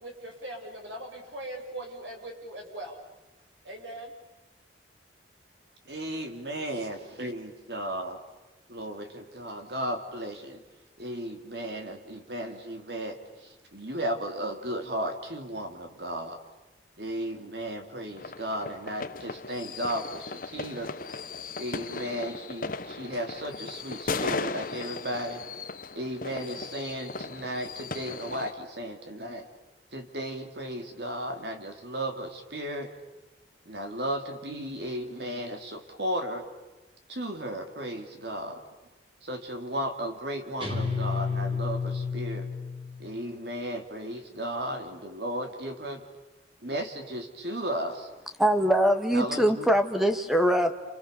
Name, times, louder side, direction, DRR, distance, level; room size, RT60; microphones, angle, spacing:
voice 1, 0.0-3.0 3.6-4.1, right 1 dB, 85° right, 1 dB, 6.8 m, -40 dB
voice 2, 5.9-8.2 8.7-10.6 11.0-16.4 17.0-20.9 21.6-25.4 26.0-29.5 29.9-32.9 33.7-36.4 37.1-38.6 39.2-42.5 43.0-46.0 46.6-48.1 49.1-49.7, right 1 dB, 60° right, 4 dB, 3.4 m, -35 dB
sound 1, 18.2-28.5, left 4 dB, 45° left, 1.0 m, -37 dB
Guitar, 40.6-43.2, left 5 dB, 30° right, 3.6 m, -31 dB
voice 3, 48.4-50.7, equal, ahead, 7 dB, 1.8 m, -23 dB
29.0 x 29.0 x 7.0 m, 1.1 s
head